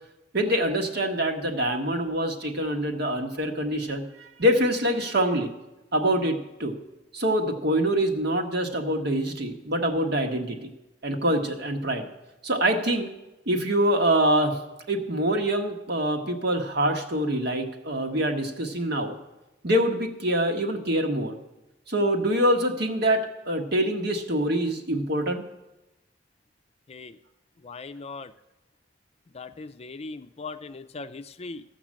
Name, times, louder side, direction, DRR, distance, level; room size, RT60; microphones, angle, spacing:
voice 1, 0.3-5.5 5.9-6.8 7.1-10.6 11.0-12.1 12.4-13.1 13.5-14.6 14.9-19.1 19.6-21.3 21.9-25.4, right 1 dB, 60° right, 4 dB, 1.4 m, -25 dB
voice 2, 27.6-28.3 29.3-31.6, left 3 dB, 35° left, 10 dB, 0.5 m, -39 dB
14.5 x 6.0 x 7.5 m, 1.0 s
head